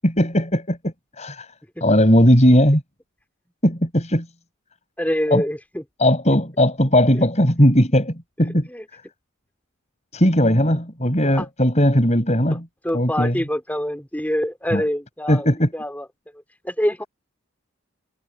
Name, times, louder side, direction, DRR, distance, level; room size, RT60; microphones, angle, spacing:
voice 1, 0.0-1.5 1.8-2.8 3.6-4.3 5.3-5.4 6.0-9.0 10.1-12.6 12.9-13.4 14.7-14.8 15.3-15.7, equal, 30° left, 7.6 m, -18 dB
voice 2, 5.0-5.8 7.1-7.2 8.7-8.8 11.2-11.4 12.5-12.6 12.8-15.5 15.7-16.1 16.6-17.0, equal, 10° left, 4.2 m, -25 dB
head